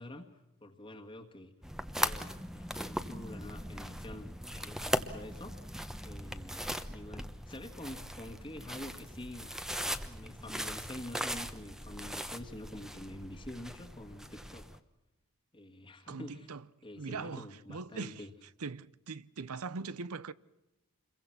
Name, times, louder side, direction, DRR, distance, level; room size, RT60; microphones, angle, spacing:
voice 1, 0.0-1.5 2.0-5.7 6.0-9.6 10.0-14.7 15.5-16.5 16.8-18.3, left 1 dB, 25° left, 1.6 m, -47 dB
sound 1, 1.6-14.8, equal, ahead, 1.0 m, -39 dB
voice 2, 16.1-16.6 17.0-18.2 18.6-20.3, right 4 dB, 80° right, 0.7 m, -41 dB
27.5 x 22.5 x 5.9 m
head